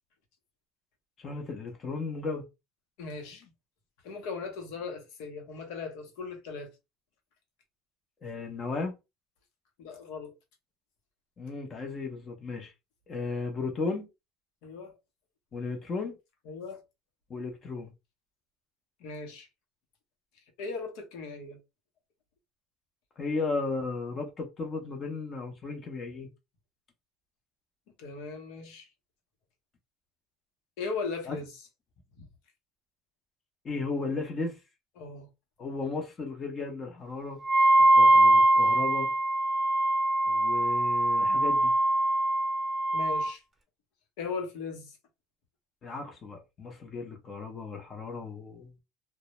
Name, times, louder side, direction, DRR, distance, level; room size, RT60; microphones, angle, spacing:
voice 1, 1.2-2.5 8.2-8.9 11.4-12.7 13.1-14.1 15.5-16.2 17.3-17.9 23.2-26.3 31.3-31.4 33.6-34.6 35.6-37.4 37.9-39.1 40.3-41.7 45.8-48.8, left 3 dB, 30° left, 0.6 m, -35 dB
voice 2, 3.0-3.5 4.0-6.7 9.8-10.3 14.6-15.0 16.4-16.8 19.0-19.5 20.6-21.6 28.0-28.9 30.8-31.5 35.0-35.3 42.9-43.4 44.2-45.0, left 4 dB, 75° left, 0.8 m, -38 dB
Wind instrument woodwind instrument, 37.4-43.3, right 1 dB, 10° right, 0.7 m, -22 dB
2.1 x 2.0 x 2.8 m
supercardioid pair, 125°, 0 cm